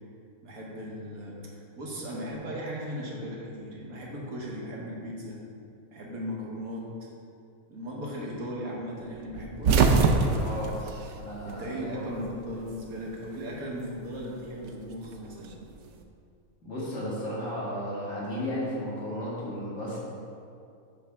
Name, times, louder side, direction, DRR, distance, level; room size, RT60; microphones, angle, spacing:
voice 1, 0.4-1.4 1.8-5.4 5.9-7.1 7.7-9.9 11.5-15.6, equal, 85° right, -3 dB, 1.7 m, -37 dB
sound 1, 9.3-11.9 12.2-13.2 14.4-15.9, right 4 dB, 65° right, 0.8 m, -25 dB
voice 2, 10.2-10.8 11.2-12.3 16.6-20.0, equal, 55° left, -8 dB, 2.2 m, -34 dB
7.1 x 3.4 x 5.7 m, 2.4 s
omnidirectional pair, 1.5 m